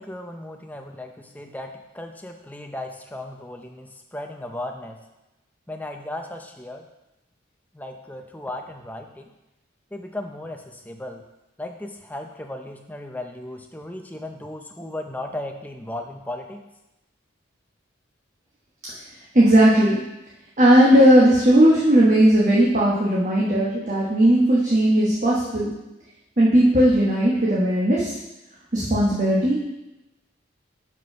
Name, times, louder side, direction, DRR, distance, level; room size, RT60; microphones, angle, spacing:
voice 1, 0.0-5.0 5.7-6.8 7.7-9.3 9.9-11.2 11.6-16.6, left 1 dB, 10° left, 4 dB, 0.5 m, -36 dB
voice 2, 19.3-20.0 20.6-25.7 26.4-28.2 28.7-29.6, right 1 dB, 40° right, -6 dB, 1.2 m, -17 dB
6.0 x 5.3 x 5.4 m, 0.98 s
head